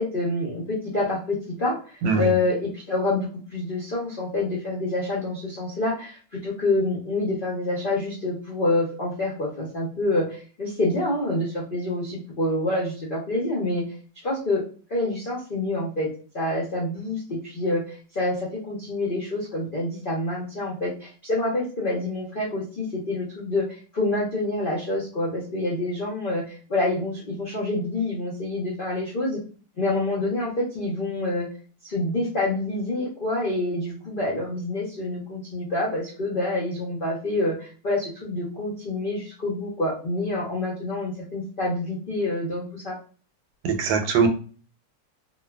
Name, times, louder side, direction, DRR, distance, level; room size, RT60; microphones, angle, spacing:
voice 1, 0.0-13.8 14.2-14.6 14.9-16.1 16.3-29.4 29.8-31.5 31.8-43.0, left 2 dB, 65° left, -6 dB, 0.5 m, -27 dB
voice 2, 43.6-44.3, right 5 dB, 85° right, 5 dB, 1.3 m, -21 dB
2.9 x 2.3 x 2.2 m, 0.39 s
omnidirectional pair, 2.0 m